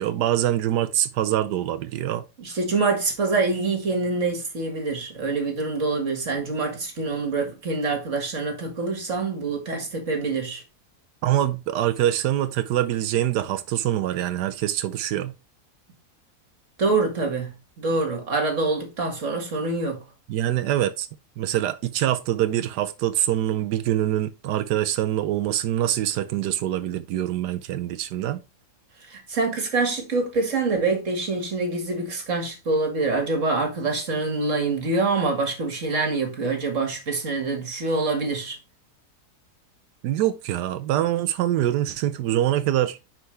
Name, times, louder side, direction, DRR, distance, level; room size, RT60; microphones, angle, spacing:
voice 1, 0.0-2.2 11.2-15.3 20.3-21.1 21.4-28.4 40.0-43.0, right 12 dB, 85° right, 1.2 m, -24 dB
voice 2, 2.4-10.6 16.8-17.5 17.8-20.0 29.1-38.6, right 3 dB, 50° right, 2.1 m, -25 dB
9.6 x 4.6 x 3.2 m
omnidirectional pair, 1.7 m